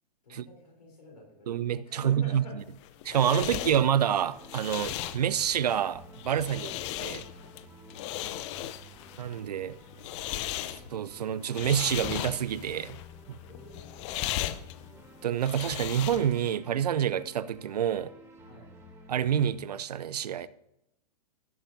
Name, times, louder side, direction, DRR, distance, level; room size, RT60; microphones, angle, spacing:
voice 1, 0.2-1.5 1.8-2.6 3.5-3.7 6.6-6.8 13.4-14.1 18.5-18.7, left 2 dB, 80° left, 4.0 m, -48 dB
voice 2, 1.5-2.4 3.0-6.7 7.0-7.3 9.2-9.8 10.9-13.0 13.3-13.4 15.2-18.1 19.1-20.5, right 9 dB, 75° right, 0.6 m, -28 dB
sound 1, 2.6-16.5, left 14 dB, 45° left, 0.6 m, -37 dB
sound 2, 3.5-19.5, equal, 15° right, 3.7 m, -52 dB
17.0 x 7.1 x 2.7 m
hypercardioid pair, 110°, 20 cm